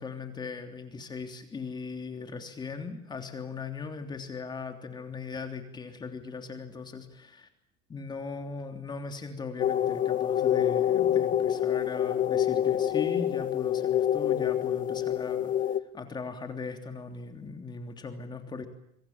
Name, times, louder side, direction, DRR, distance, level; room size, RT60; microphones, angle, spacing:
voice 1, 0.0-7.5 7.9-15.5 15.9-18.7, left 4 dB, 25° left, 6 dB, 3.3 m, -39 dB
sound 1, 9.6-15.8, left 10 dB, 50° left, 1.5 m, -26 dB
27.5 x 24.5 x 7.4 m, 0.73 s
cardioid pair, 130°, 18 cm